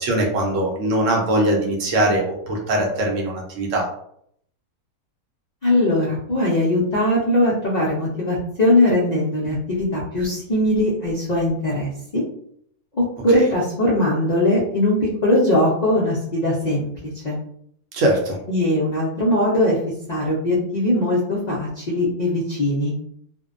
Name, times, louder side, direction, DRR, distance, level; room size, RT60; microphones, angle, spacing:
voice 1, 0.0-3.9 17.9-18.4, right 1 dB, 65° right, 0 dB, 0.9 m, -21 dB
voice 2, 5.6-12.2 12.9-17.4 18.5-19.8 20.1-22.9, left 1 dB, 70° left, -6 dB, 0.4 m, -20 dB
2.6 x 2.1 x 2.4 m, 0.69 s
omnidirectional pair, 1.5 m